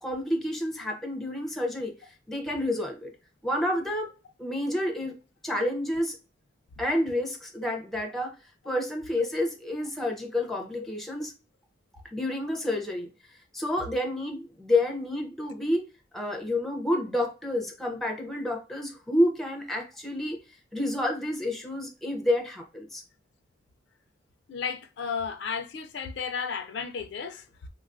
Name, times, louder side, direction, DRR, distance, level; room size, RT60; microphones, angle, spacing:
voice 1, 0.0-3.1 3.4-4.1 4.4-5.1 5.4-6.2 6.8-8.3 8.7-11.3 12.1-13.1 13.5-15.8 16.1-20.4 20.7-23.0, left 1 dB, ahead, 0.4 m, -29 dB
voice 2, 24.5-27.4, left 6 dB, 60° left, 0.4 m, -33 dB
3.4 x 2.3 x 2.4 m
head